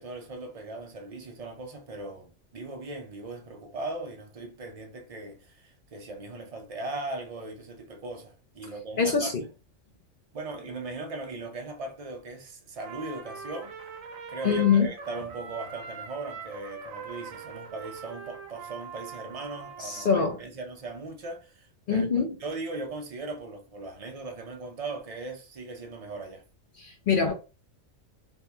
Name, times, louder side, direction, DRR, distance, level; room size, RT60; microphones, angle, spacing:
voice 1, 0.0-9.5 10.3-13.9 14.3-22.1 22.4-26.4, right 3 dB, 55° right, 0.4 m, -38 dB
voice 2, 9.0-9.4 14.4-14.9 19.8-20.4 21.9-22.4 26.8-27.3, left 6 dB, 60° left, 0.6 m, -24 dB
Trumpet, 12.8-20.4, right 5 dB, 80° right, 1.2 m, -42 dB
3.4 x 2.3 x 2.8 m
omnidirectional pair, 1.4 m